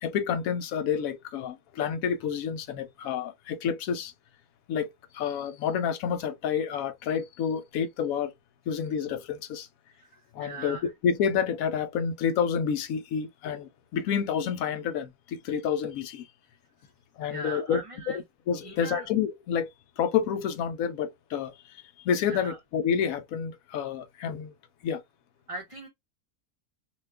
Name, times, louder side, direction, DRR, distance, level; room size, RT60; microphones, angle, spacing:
voice 1, 0.0-4.1 4.7-8.3 8.7-9.7 10.3-16.3 17.2-17.8 18.1-19.7 20.0-24.5 24.8-25.0, left 7 dB, 70° left, 0.9 m, -29 dB
voice 2, 10.4-10.9 17.3-18.2 18.6-19.1 22.3-22.6 25.5-25.9, right 3 dB, 30° right, 0.7 m, -39 dB
2.8 x 2.3 x 3.3 m
omnidirectional pair, 1.6 m